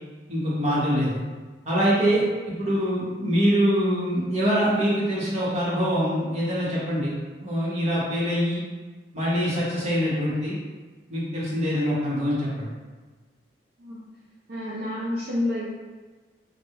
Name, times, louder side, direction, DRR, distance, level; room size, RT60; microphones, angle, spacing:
voice 1, 0.3-1.2 1.6-2.2 2.6-7.1 7.4-8.6 9.1-10.5 11.1-12.7, equal, 40° right, -8 dB, 0.8 m, -24 dB
voice 2, 14.5-15.7, left 1 dB, 55° right, -7 dB, 0.4 m, -29 dB
2.3 x 2.0 x 2.9 m, 1.4 s
head